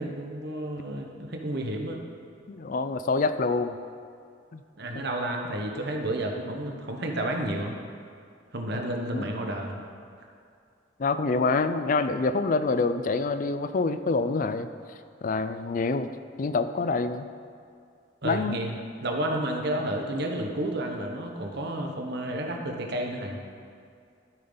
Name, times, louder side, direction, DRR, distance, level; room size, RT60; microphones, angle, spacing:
voice 1, 0.0-2.0 4.8-7.7 8.5-9.8 18.2-23.4, right 1 dB, 60° right, 2 dB, 1.1 m, -31 dB
voice 2, 2.5-3.8 4.5-4.6 9.1-9.3 11.0-14.7 15.2-16.1 16.4-17.3 18.2-18.6, left 3 dB, 45° left, 11 dB, 0.4 m, -26 dB
13.0 x 7.7 x 4.0 m, 2.4 s
head